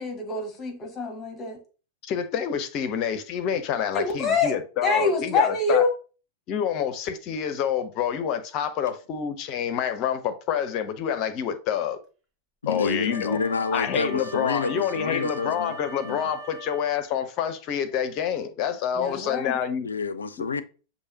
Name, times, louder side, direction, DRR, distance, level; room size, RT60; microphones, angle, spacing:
voice 1, 0.0-1.6 3.9-4.5 4.8-5.9 19.0-19.6, left 4 dB, 25° left, 1.2 m, -25 dB
voice 2, 2.0-5.8 6.5-12.0 12.7-13.4 13.7-19.9, left 8 dB, 40° left, 0.6 m, -28 dB
voice 3, 12.6-15.8 16.0-16.3 19.8-20.6, left 4 dB, 75° left, 0.4 m, -28 dB
Wind instrument woodwind instrument, 13.1-17.1, right 2 dB, 30° right, 1.3 m, -41 dB
6.3 x 2.8 x 2.8 m
figure-of-eight pair, 90°, 0 cm